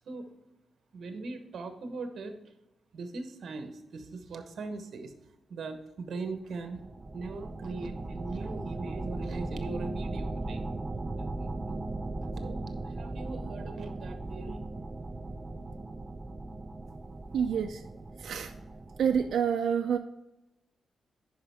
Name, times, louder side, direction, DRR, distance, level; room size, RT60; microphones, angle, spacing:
voice 1, 0.9-2.4 2.9-10.6 11.2-11.8 12.4-14.7, right 3 dB, 60° right, 7 dB, 1.1 m, -40 dB
sound 1, 6.5-19.4, right 2 dB, 20° right, 0.4 m, -38 dB
voice 2, 17.3-17.9 18.2-18.5 19.0-20.0, right 7 dB, 80° right, 4 dB, 0.4 m, -28 dB
10.5 x 5.1 x 3.5 m, 0.93 s
wide cardioid pair, 160°, 0 cm